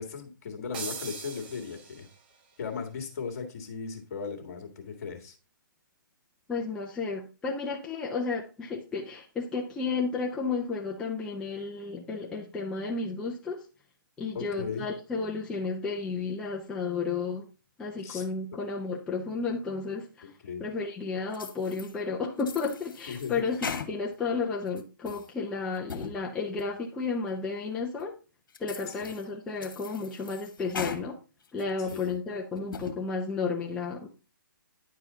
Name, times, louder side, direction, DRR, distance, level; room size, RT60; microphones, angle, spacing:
voice 1, 0.0-2.1 2.6-5.4 14.3-14.9 18.0-18.2 20.4-20.7 23.1-23.4 28.9-29.1 31.9-32.2, left 5 dB, 45° left, 4 dB, 1.9 m, -37 dB
sound 1, 0.7-2.4, right 6 dB, 30° right, 0.9 m, -41 dB
voice 2, 6.5-13.6 14.2-17.5 17.8-28.1 28.6-31.2 31.5-34.1, left 4 dB, 5° left, -2 dB, 0.6 m, -32 dB
sound 2, 21.3-21.9 22.4-24.3 24.7-25.3 25.7-26.2 26.6-26.7 27.3-27.4 28.0-28.1 28.5-29.2 29.6-31.0 31.4-32.1 32.6-33.0, left 6 dB, 70° left, 1.4 m, -39 dB
10.0 x 4.8 x 4.0 m, 0.33 s
hypercardioid pair, 160°, 11 cm